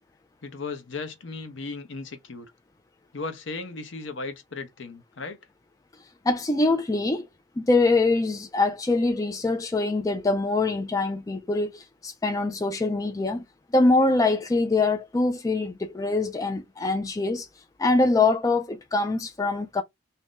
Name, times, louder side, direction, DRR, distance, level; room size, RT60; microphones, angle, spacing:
voice 1, 0.4-2.5 3.1-5.4, left 3 dB, 65° left, 0.7 m, -36 dB
voice 2, 6.2-7.3 7.6-13.4 13.7-17.5 17.8-19.8, left 3 dB, 15° left, 0.3 m, -24 dB
2.7 x 2.5 x 3.6 m
head